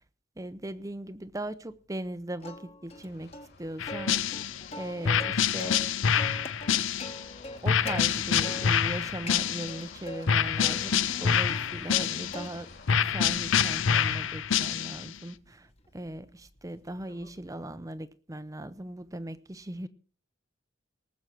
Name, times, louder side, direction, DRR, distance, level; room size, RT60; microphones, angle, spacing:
voice 1, 0.4-4.5 4.8-5.9 6.7-6.8 7.6-12.7 13.0-19.9, right 1 dB, 15° right, 0.7 m, -39 dB
Plucked string instrument, 2.4-3.1 3.3-3.5 3.9-5.9 6.2-8.0 8.4-9.0 9.3-10.2 10.6-12.1 12.3-12.8 13.2-17.5, left 1 dB, 30° left, 1.5 m, -42 dB
sound 1, 2.9-13.4, left 2 dB, 50° left, 3.3 m, -51 dB
sound 2, 3.8-4.7 5.0-7.3 7.7-9.9 10.3-12.5 12.9-15.1, left 7 dB, 70° left, 0.6 m, -27 dB
19.0 x 8.0 x 6.1 m
head